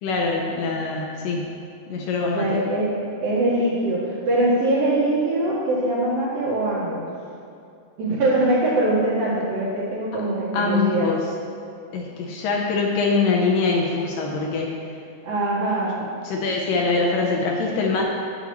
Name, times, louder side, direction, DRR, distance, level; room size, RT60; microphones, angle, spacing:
voice 1, 0.0-1.5 1.9-2.6 10.1-10.2 10.5-11.2 11.9-14.8 16.2-18.0, left 4 dB, 75° left, -1 dB, 2.2 m, -23 dB
voice 2, 2.2-2.9 3.2-7.0 8.0-11.1 15.2-16.0, right 1 dB, 70° right, -8 dB, 3.0 m, -22 dB
9.7 x 8.7 x 3.0 m, 2.5 s
omnidirectional pair, 4.3 m